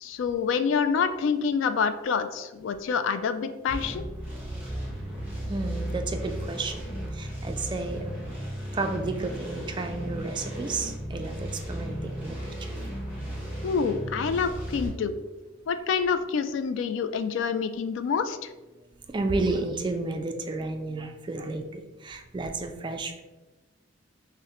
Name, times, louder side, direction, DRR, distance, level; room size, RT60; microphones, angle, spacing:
voice 1, 0.0-4.1 13.6-15.2 15.7-18.5, left 6 dB, 75° left, 10 dB, 0.3 m, -27 dB
sound 1, 3.7-14.9, equal, 10° right, 1.4 m, -35 dB
voice 2, 5.5-8.3 8.7-12.3 12.7-12.8 19.1-23.2, right 3 dB, 25° right, 5 dB, 0.3 m, -32 dB
5.5 x 2.1 x 2.9 m, 1.1 s
head